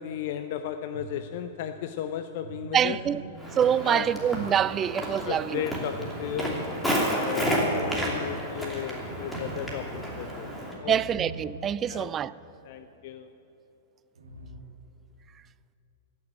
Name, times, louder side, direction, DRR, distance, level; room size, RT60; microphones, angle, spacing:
voice 1, 0.0-3.0 3.8-4.1 5.2-10.5 10.8-11.2 11.9-12.1 12.6-13.3, left 10 dB, 50° left, 0.5 m, -35 dB
sound 1, 0.9-1.6 2.4-5.1 5.8-12.0 12.3-12.4 14.2-14.6, right 3 dB, 75° right, 2.2 m, -44 dB
voice 2, 2.7-3.2 3.6-5.6 10.8-12.3, right 9 dB, 25° right, 0.3 m, -25 dB
Walk footsteps, 3.4-10.8, equal, 5° left, 2.7 m, -31 dB
16.5 x 6.6 x 10.0 m
figure-of-eight pair, 100°, 0 cm